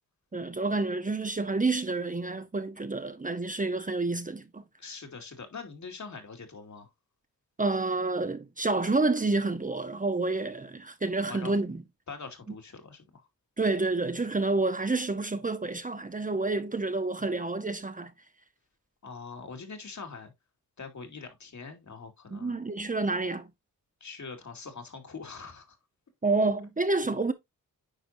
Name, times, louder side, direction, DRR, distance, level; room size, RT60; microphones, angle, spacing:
voice 1, 0.3-4.6 7.6-11.8 13.6-18.1 22.3-23.5 26.2-27.3, right 3 dB, 25° right, 1.0 m, -29 dB
voice 2, 4.8-6.9 11.3-11.5 12.1-13.3 19.0-20.3 20.8-22.6 24.0-25.8, left 4 dB, 55° left, 2.5 m, -43 dB
9.7 x 4.5 x 2.7 m
cardioid pair, 55°, 35 cm